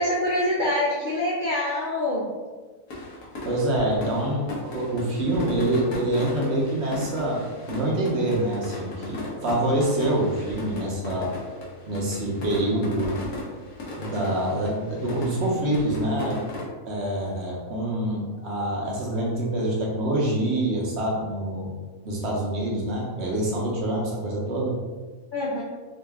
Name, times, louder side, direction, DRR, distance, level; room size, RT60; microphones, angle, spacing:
voice 1, 0.0-2.3 25.3-25.6, left 1 dB, 60° left, -3 dB, 0.5 m, -25 dB
sound 1, 2.9-16.6, left 1 dB, 85° left, 1.5 m, -36 dB
voice 2, 3.4-13.2 14.0-16.4 16.9-21.7 22.0-24.7, right 1 dB, 55° right, -3 dB, 1.0 m, -26 dB
3.9 x 2.4 x 3.4 m, 1.4 s
omnidirectional pair, 1.5 m